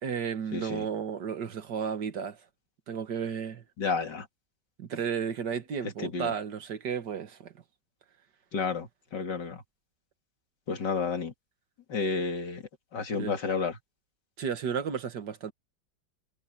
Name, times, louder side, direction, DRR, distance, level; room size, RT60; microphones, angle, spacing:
voice 1, 0.0-2.4 2.9-3.6 4.8-7.5 13.1-13.3 14.4-15.5, right 7 dB, 75° right, 2.1 m, -33 dB
voice 2, 0.5-0.8 3.8-4.3 6.0-6.3 8.5-9.6 10.7-11.3 11.9-12.6 12.9-13.8, left 4 dB, 85° left, 3.0 m, -31 dB
omnidirectional pair, 1.8 m